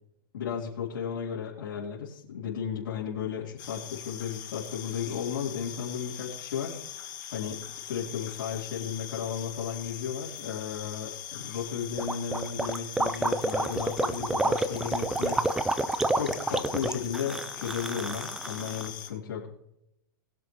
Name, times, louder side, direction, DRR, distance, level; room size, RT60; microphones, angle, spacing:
voice 1, 0.3-15.5 16.1-19.5, left 7 dB, 75° left, -5 dB, 4.0 m, -34 dB
sound 1, 3.6-19.1, left 10 dB, 60° left, 3.0 m, -42 dB
Gurgling, 12.0-18.9, right 2 dB, 5° right, 0.5 m, -29 dB
22.0 x 8.1 x 3.3 m, 0.78 s
hypercardioid pair, 160°, 12 cm